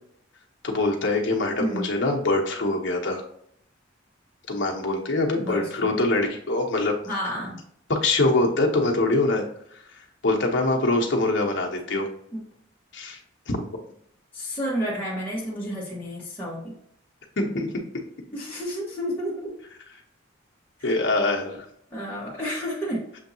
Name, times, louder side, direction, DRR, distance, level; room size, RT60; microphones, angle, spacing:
voice 1, 0.6-3.2 4.5-7.0 7.9-9.4 9.7-9.8 10.2-12.1 12.9-13.2 13.5-13.6 17.4-17.8 20.8-21.6, left 2 dB, 70° left, 1 dB, 0.9 m, -24 dB
voice 2, 1.6-1.9 5.3-6.0 7.0-7.6 12.3-12.4 14.3-16.7 18.3-19.5 20.8-20.9 21.9-23.0, equal, 10° left, -9 dB, 1.1 m, -31 dB
6.8 x 2.7 x 2.7 m, 0.69 s
head